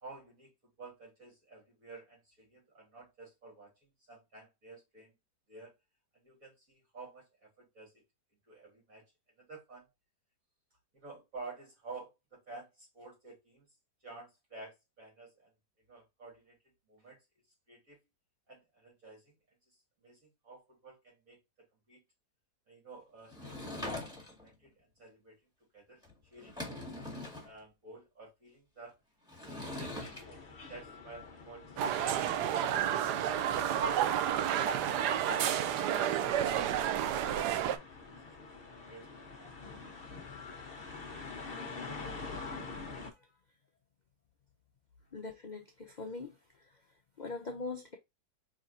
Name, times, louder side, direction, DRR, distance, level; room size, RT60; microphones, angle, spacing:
voice 1, 0.0-5.1 5.5-5.7 6.1-8.0 8.5-9.9 10.9-13.7 14.0-15.5 15.9-16.6 16.9-17.2 17.7-18.0 18.5-19.4 19.7-22.0 22.7-24.0 24.4-27.2 27.4-29.0 29.4-33.1 36.9-38.5 38.8-39.9, right 3 dB, 55° right, 3.4 m, -52 dB
Sliding door / Wood, 23.3-24.5 26.0-26.1 26.4-27.5 29.3-30.2, left 1 dB, ahead, 1.8 m, -42 dB
sound 1, 30.0-43.1, left 4 dB, 40° left, 1.1 m, -47 dB
sound 2, 31.8-37.8, right 10 dB, 80° right, 1.2 m, -30 dB
voice 2, 45.1-46.7 47.2-48.0, left 3 dB, 60° left, 0.4 m, -42 dB
4.9 x 3.8 x 2.6 m
omnidirectional pair, 1.8 m